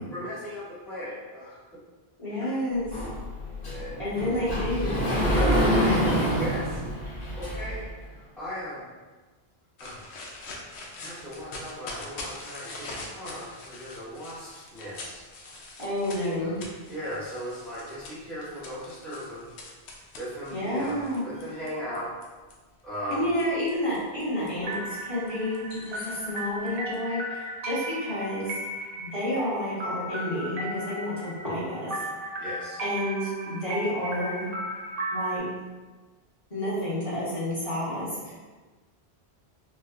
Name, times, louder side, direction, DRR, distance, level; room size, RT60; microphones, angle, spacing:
voice 1, 0.1-1.8 2.4-2.5 3.6-4.0 5.3-6.8 7.3-8.8 9.8-10.1 11.0-15.2 16.4-16.6 16.9-19.4 20.2-22.1 22.8-23.3 32.4-32.8, equal, ahead, -10 dB, 0.6 m, -37 dB
voice 2, 2.2-2.9 4.0-5.2 5.9-6.0 15.8-16.6 20.5-21.2 23.1-28.5 29.0-31.9 32.8-34.4 35.1-35.5 36.5-38.4, left 1 dB, 30° left, -10 dB, 1.2 m, -30 dB
Sliding door, 2.9-7.9, equal, 55° left, 1.1 m, -26 dB
sound 1, 9.8-22.5 23.1-27.0, left 2 dB, 90° left, 0.9 m, -44 dB
sound 2, 24.6-35.4, right 1 dB, 65° right, 0.8 m, -35 dB
4.6 x 2.1 x 2.4 m, 1.3 s
omnidirectional pair, 1.1 m